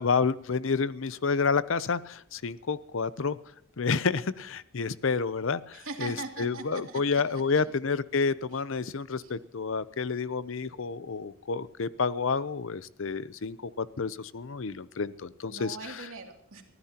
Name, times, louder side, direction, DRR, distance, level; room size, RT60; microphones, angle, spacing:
voice 1, 0.0-3.4 3.8-15.8, left 5 dB, 70° left, 17 dB, 0.6 m, -29 dB
voice 2, 5.7-7.6 8.5-8.6 9.1-9.4 15.5-16.6, right 4 dB, 80° right, 2 dB, 2.8 m, -41 dB
23.5 x 15.5 x 2.9 m, 0.70 s
head